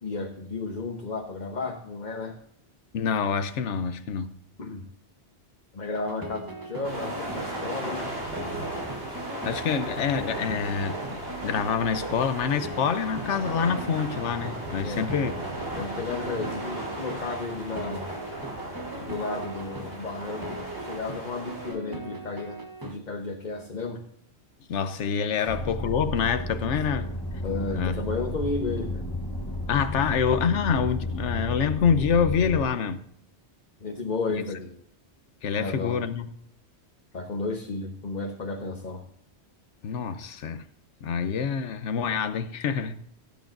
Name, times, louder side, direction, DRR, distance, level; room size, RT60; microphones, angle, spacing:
voice 1, 0.0-2.4 4.6-4.9 5.7-8.2 14.8-15.1 15.8-18.1 19.0-24.0 25.4-25.5 27.4-29.0 33.8-34.7 35.6-36.0 37.1-39.0, left 3 dB, 40° left, 1.1 m, -33 dB
voice 2, 2.9-4.3 9.4-15.3 24.7-27.1 27.7-28.0 29.7-33.0 35.4-36.3 39.8-40.6 41.0-43.0, left 6 dB, 90° left, 1.1 m, -26 dB
sound 1, 5.8-22.9, right 2 dB, 20° right, 1.0 m, -40 dB
sound 2, 6.8-21.7, right 1 dB, 70° right, 4.7 m, -36 dB
sound 3, 25.5-32.7, left 1 dB, 20° left, 1.1 m, -32 dB
17.0 x 8.5 x 2.5 m
omnidirectional pair, 1.2 m